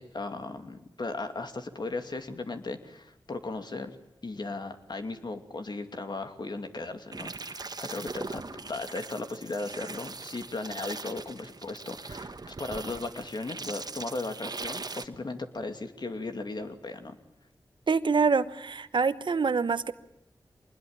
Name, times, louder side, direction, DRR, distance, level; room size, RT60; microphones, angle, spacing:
voice 1, 0.0-4.0 4.2-17.2, left 3 dB, 60° left, 7 dB, 2.5 m, -37 dB
sound 1, 7.1-15.1, right 3 dB, 50° right, 1.4 m, -40 dB
voice 2, 17.9-19.9, right 5 dB, 70° right, 13 dB, 1.1 m, -25 dB
24.5 x 20.5 x 8.9 m, 0.87 s
cardioid pair, 50°, 8 cm